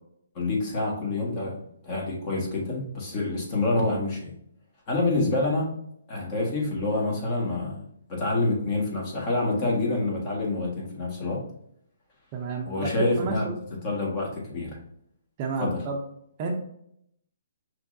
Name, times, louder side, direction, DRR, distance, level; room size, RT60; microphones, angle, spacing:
voice 1, 0.3-4.3 4.9-5.8 6.1-7.8 8.1-11.4 12.6-13.5 13.8-14.8 15.6-15.8, left 2 dB, 30° left, -2 dB, 1.6 m, -27 dB
voice 2, 12.3-13.6 15.4-16.0 16.4-16.5, right 4 dB, 30° right, 2 dB, 0.7 m, -31 dB
5.7 x 3.2 x 2.6 m, 0.71 s
hypercardioid pair, 150°, 0 cm